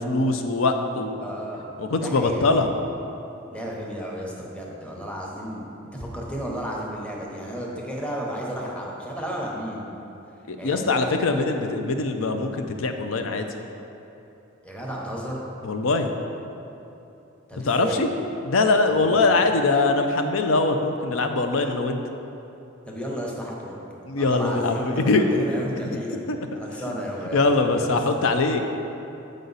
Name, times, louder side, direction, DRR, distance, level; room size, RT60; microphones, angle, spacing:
voice 1, 0.0-1.2 1.8-2.7 10.5-13.5 15.6-16.1 17.6-18.1 18.4-22.0 24.0-25.3 25.8-25.9 26.3-26.4 26.9-27.0 27.3-28.6, left 3 dB, 80° left, 6 dB, 0.6 m, -22 dB
voice 2, 1.2-1.7 2.0-2.5 3.5-5.6 5.9-9.9 10.6-11.3 14.6-15.4 17.5-18.1 18.9-19.3 22.9-23.8 24.2-26.2 26.5-27.5 27.8-28.0, equal, 5° left, -3 dB, 0.8 m, -33 dB
8.1 x 5.2 x 4.0 m, 2.9 s
head